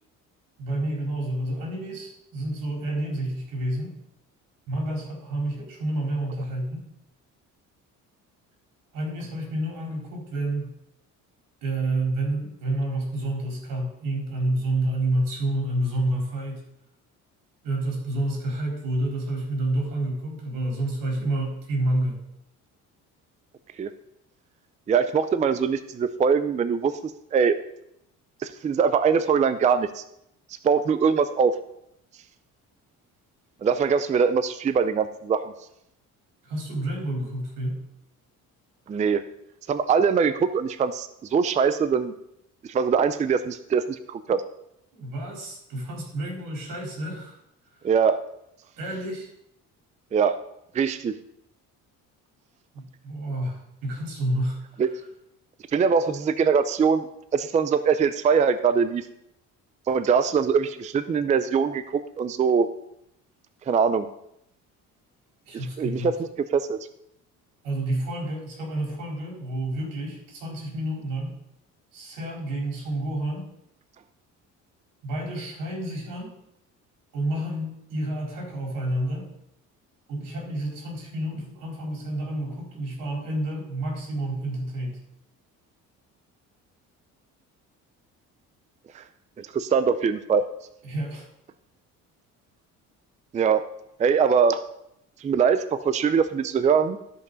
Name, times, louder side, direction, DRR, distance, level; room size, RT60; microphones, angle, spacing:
voice 1, 0.6-4.0 4.7-6.8 8.9-10.7 11.6-16.7 17.6-22.2 36.4-37.8 44.9-47.4 47.8-47.9 48.8-49.3 52.7-54.8 65.4-66.1 67.6-71.3 71.9-73.5 75.0-76.3 77.1-79.3 80.1-85.0 90.8-91.3, right 1 dB, 85° right, -2 dB, 3.8 m, -29 dB
voice 2, 24.9-26.9 27.3-27.6 28.4-30.0 30.6-31.5 33.6-35.4 38.9-39.2 39.7-42.1 42.6-44.4 47.8-48.2 50.1-50.4 50.7-51.2 54.8-54.9 55.7-57.1 57.3-59.1 59.9-62.7 63.7-64.1 65.8-66.8 88.9-89.0 89.4-90.4 93.3-93.6 94.0-94.6 95.2-97.0, right 6 dB, 25° right, 12 dB, 0.4 m, -22 dB
13.5 x 5.5 x 3.9 m, 0.78 s
cardioid pair, 130°, 32 cm